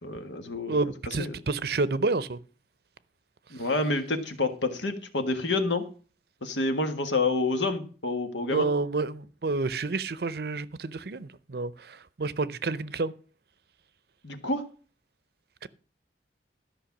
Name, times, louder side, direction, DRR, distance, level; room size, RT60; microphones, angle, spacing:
voice 1, 0.0-1.4 3.5-5.8 6.4-8.7 14.2-14.6, left 2 dB, 90° left, 1.6 m, -28 dB
voice 2, 0.7-2.4 8.5-13.1 15.6-15.7, right 3 dB, 60° right, 0.6 m, -29 dB
13.0 x 5.6 x 7.2 m
head